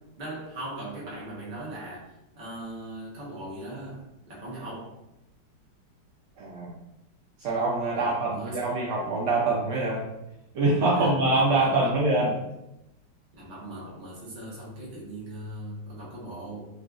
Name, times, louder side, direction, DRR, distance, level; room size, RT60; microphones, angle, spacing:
voice 1, 0.2-5.0 7.9-8.7 10.9-12.4 13.3-16.7, right 1 dB, 40° right, -6 dB, 0.7 m, -39 dB
voice 2, 6.4-6.7 7.4-10.0 10.5-12.3, right 2 dB, 70° right, -3 dB, 1.1 m, -24 dB
3.8 x 2.4 x 2.3 m, 0.87 s
omnidirectional pair, 2.2 m